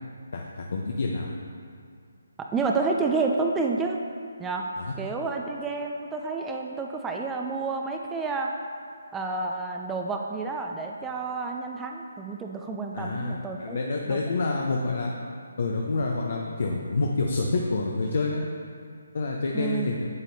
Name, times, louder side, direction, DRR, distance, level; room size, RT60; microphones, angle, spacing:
voice 1, 0.3-1.3 4.8-4.9 12.9-13.3 13.6-15.1 15.6-18.5 19.1-20.1, left 3 dB, 60° left, 0 dB, 0.7 m, -28 dB
voice 2, 2.4-4.0 4.4-4.6 5.0-8.5 9.1-14.3 19.5-19.9, right 4 dB, 10° right, 1 dB, 0.4 m, -30 dB
9.5 x 7.2 x 2.7 m, 2.2 s
figure-of-eight pair, 150°, 0 cm